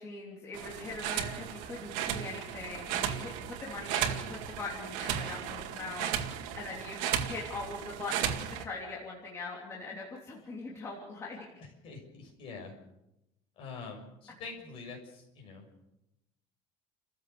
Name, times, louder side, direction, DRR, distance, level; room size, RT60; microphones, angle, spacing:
voice 1, 0.0-11.5, left 3 dB, 20° left, -3 dB, 3.1 m, -42 dB
sound 1, 0.5-8.6, right 9 dB, 75° right, 2.2 m, -35 dB
voice 2, 11.6-12.7 13.6-15.7, left 4 dB, 45° left, 2 dB, 6.6 m, -45 dB
29.5 x 14.5 x 7.0 m, 0.88 s
cardioid pair, 175°, 13 cm